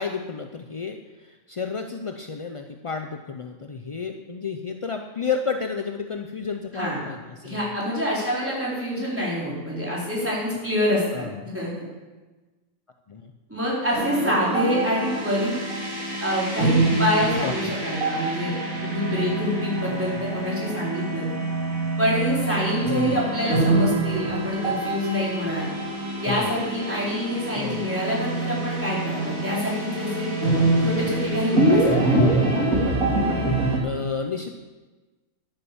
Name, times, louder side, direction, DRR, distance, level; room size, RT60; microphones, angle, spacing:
voice 1, 0.0-7.8 11.1-11.5 13.1-13.3 17.4-17.7 19.9-20.2 22.9-23.2 26.3-26.5 27.6-27.9 32.2-32.4 33.8-34.6, left 5 dB, 45° left, 5 dB, 0.4 m, -31 dB
voice 2, 6.7-7.1 7.4-11.3 11.5-11.8 13.5-15.5 16.2-18.5 18.8-21.3 22.0-25.7 26.2-30.3 30.8-32.2, equal, 10° right, -7 dB, 4.4 m, -26 dB
sound 1, 13.9-33.8, right 2 dB, 85° right, 3.2 m, -25 dB
11.5 x 9.1 x 7.1 m, 1.2 s
omnidirectional pair, 1.4 m